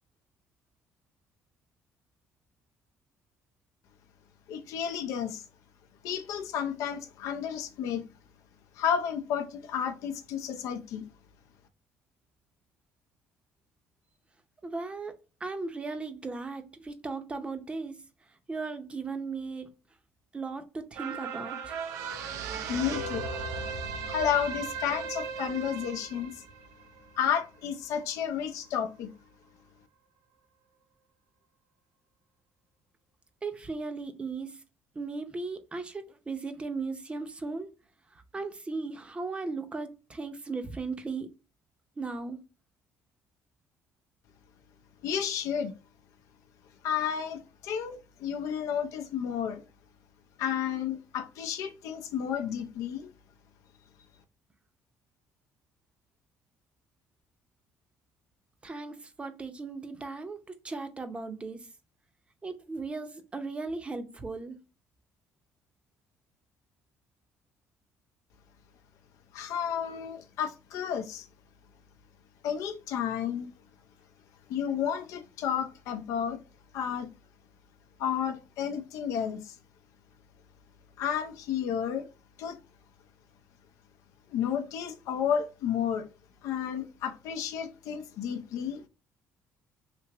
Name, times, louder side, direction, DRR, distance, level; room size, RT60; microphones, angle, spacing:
voice 1, 4.5-5.4 6.0-8.0 8.7-11.0 22.7-23.3 24.0-26.4 27.2-29.1 45.0-45.8 46.8-49.6 50.4-53.1 69.3-71.3 72.4-73.5 74.5-76.4 76.7-77.1 78.0-79.6 81.0-82.1 82.4-82.6 84.3-86.1 86.4-88.8, left 8 dB, 80° left, 0.5 m, -32 dB
voice 2, 14.6-18.0 18.5-19.7 20.3-21.8 33.4-34.6 34.9-37.7 38.1-41.3 42.0-42.4 58.6-61.7 62.4-64.6, right 3 dB, 20° right, 0.6 m, -37 dB
sound 1, 20.9-27.6 28.0-28.1, right 5 dB, 80° right, 0.5 m, -37 dB
3.4 x 2.8 x 2.8 m
cardioid pair, 105°, 5 cm